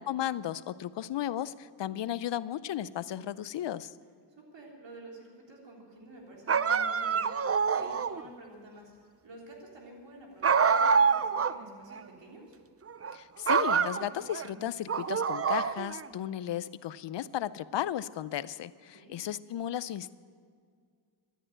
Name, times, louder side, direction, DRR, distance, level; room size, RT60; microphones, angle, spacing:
voice 1, 0.0-3.9 13.1-20.1, left 11 dB, 75° left, 17 dB, 0.6 m, -35 dB
voice 2, 4.3-8.9 9.2-12.6 18.9-19.2, right 2 dB, 85° right, -1 dB, 3.5 m, -50 dB
sound 1, 6.5-8.3 10.4-11.6 11.9-12.0 12.9-13.1 13.5-14.5 14.9-16.1, right 6 dB, 35° right, 0.6 m, -26 dB
14.5 x 10.5 x 8.8 m, 2.1 s
cardioid pair, 55°, 43 cm